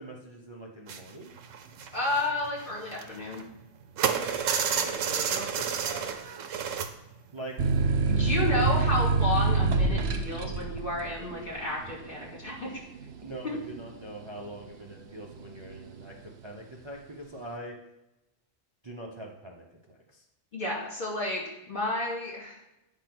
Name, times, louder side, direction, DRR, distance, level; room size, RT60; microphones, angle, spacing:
voice 1, 0.0-1.3 4.1-6.4 7.3-7.6 8.2-8.9 13.2-17.8 18.8-20.2, right 1 dB, 25° right, -1 dB, 0.7 m, -42 dB
sound 1, 0.9-1.1 1.4-3.6 4.0-6.9 7.3-7.5 7.8-7.9, right 7 dB, 85° right, 1.0 m, -30 dB
voice 2, 1.9-3.4 8.1-12.7 20.5-22.6, left 2 dB, 45° left, -5 dB, 2.9 m, -31 dB
sound 2, 7.6-14.9 15.3-16.0, right 4 dB, 65° right, 0.9 m, -27 dB
8.9 x 3.6 x 6.0 m, 0.92 s
omnidirectional pair, 1.3 m